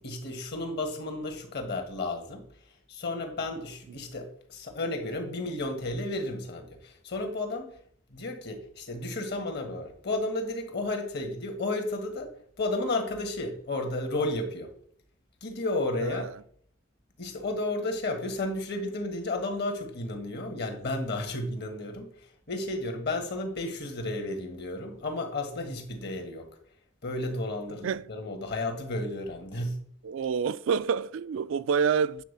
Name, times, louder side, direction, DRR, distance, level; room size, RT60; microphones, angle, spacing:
voice 1, 0.0-2.4 2.9-7.7 8.1-14.7 15.4-16.2 17.2-26.6 27.0-29.8, left 2 dB, 55° left, 1.6 m, -33 dB
voice 2, 16.0-16.3 27.8-28.1 30.0-32.2, right 6 dB, 75° right, 0.3 m, -28 dB
9.1 x 4.1 x 6.7 m
head